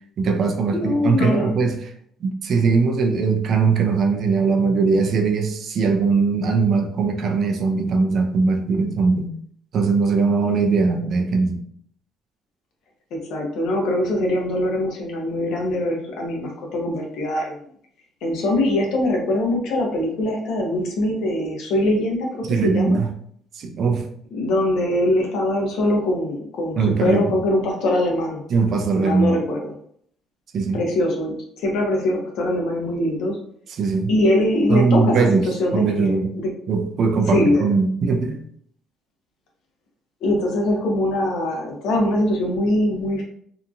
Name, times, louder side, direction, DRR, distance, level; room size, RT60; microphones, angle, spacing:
voice 1, 0.2-1.9 2.2-9.3 9.7-11.6 22.5-23.1 23.5-24.1 26.8-27.2 28.5-29.3 30.5-30.8 33.7-34.1 34.7-36.3 36.7-38.4, right 4 dB, 40° right, 4 dB, 0.3 m, -20 dB
voice 2, 0.7-1.6 13.1-17.5 18.2-23.0 24.3-28.4 29.0-29.7 30.7-33.4 34.1-36.5 37.3-37.7 40.2-43.2, left 1 dB, 65° left, 0 dB, 0.7 m, -22 dB
2.8 x 2.4 x 2.4 m, 0.64 s
cardioid pair, 160°, 0 cm